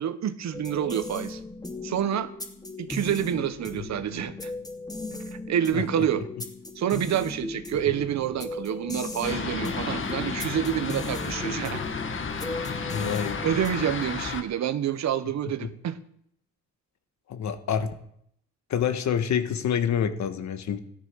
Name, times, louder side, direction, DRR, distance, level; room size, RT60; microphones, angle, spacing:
voice 1, 0.0-1.4 1.8-2.3 2.8-4.5 5.5-6.3 6.8-11.8 13.4-16.0, right 10 dB, 65° right, 13 dB, 1.2 m, -28 dB
sound 1, 0.5-14.0, left 2 dB, 10° left, 2.8 m, -37 dB
Fixed-wing aircraft airplane, 9.2-14.4, left 5 dB, 40° left, 1.8 m, -32 dB
voice 2, 12.9-13.4 15.5-15.7 17.3-17.9 18.7-20.8, left 8 dB, 65° left, 9 dB, 1.7 m, -27 dB
14.5 x 12.5 x 6.4 m, 0.71 s
cardioid pair, 90°, 30 cm